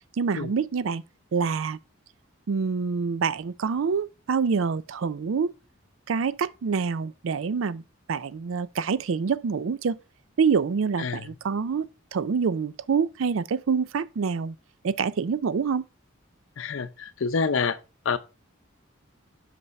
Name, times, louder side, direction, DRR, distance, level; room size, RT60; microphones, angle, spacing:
voice 1, 0.2-1.0 1.3-1.8 2.5-5.5 6.1-7.8 8.1-10.0 10.4-14.6 14.8-15.8, right 5 dB, 75° right, 0.4 m, -26 dB
voice 2, 16.6-17.8 18.0-18.2, left 5 dB, 70° left, 0.6 m, -27 dB
6.0 x 5.5 x 5.1 m
head